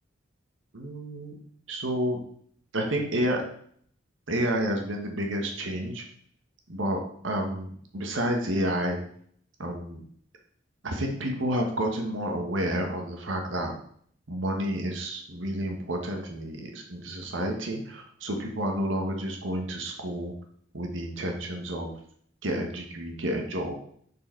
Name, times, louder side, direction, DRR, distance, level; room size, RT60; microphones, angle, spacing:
voice 1, 0.7-1.4 1.7-2.2 2.7-3.4 4.3-6.0 6.7-9.0 9.6-10.0 10.8-13.7 14.3-20.3 20.7-21.9 22.4-23.8, right 1 dB, 85° right, 3 dB, 1.3 m, -30 dB
6.8 x 4.7 x 4.5 m, 0.62 s
head